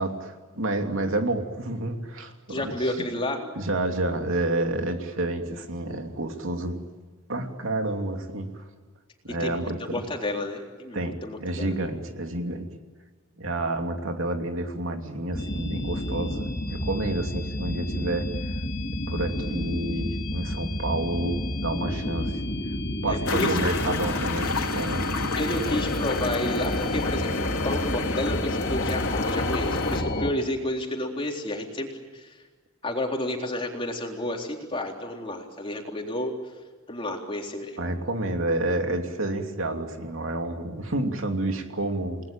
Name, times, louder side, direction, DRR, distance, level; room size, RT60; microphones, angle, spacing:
voice 1, 0.0-3.1 3.4-6.8 7.3-8.6 9.2-10.0 10.9-11.1 11.4-12.7 13.4-18.3 19.1-22.4 23.0-25.1 37.8-42.2, right 2 dB, 70° right, 4 dB, 2.9 m, -29 dB
voice 2, 2.5-3.4 9.3-11.7 23.1-23.6 25.4-31.9 32.1-32.3 32.8-36.3 36.9-37.8, left 1 dB, 25° left, 1 dB, 3.8 m, -31 dB
sound 1, 15.3-30.3, left 1 dB, 40° left, 2.1 m, -30 dB
sound 2, 23.2-30.0, left 4 dB, 85° left, 3.3 m, -31 dB
30.0 x 20.0 x 9.0 m, 1.4 s
head